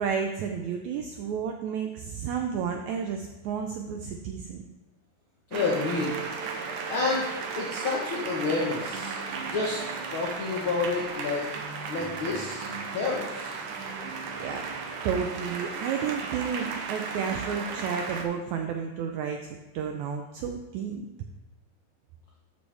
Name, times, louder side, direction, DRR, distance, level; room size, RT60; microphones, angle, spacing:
voice 1, 0.0-4.6 14.4-14.7 15.0-21.1, right 7 dB, 90° right, 4 dB, 1.6 m, -31 dB
voice 2, 5.5-6.2 6.9-7.3 7.6-9.8 10.1-11.4 11.9-13.6, left 4 dB, 70° left, -3 dB, 1.2 m, -29 dB
sound 1, 5.5-18.2, right 5 dB, 75° right, 2.2 m, -35 dB
13.0 x 5.4 x 3.3 m, 1.1 s
omnidirectional pair, 4.0 m